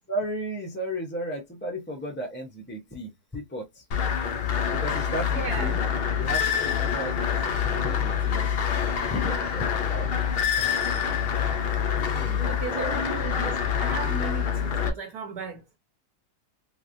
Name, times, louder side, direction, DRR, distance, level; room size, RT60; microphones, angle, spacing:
voice 1, 0.1-3.8 4.7-5.8 6.2-8.7 9.1-10.9 12.0-12.9 13.4-13.5, equal, 15° left, 0.3 m, -35 dB
sound 1, 3.9-14.9, left 7 dB, 60° left, 0.6 m, -26 dB
voice 2, 5.3-5.8 10.6-10.7 12.4-15.6, right 5 dB, 75° right, 1.4 m, -36 dB
3.4 x 2.9 x 2.5 m
omnidirectional pair, 1.7 m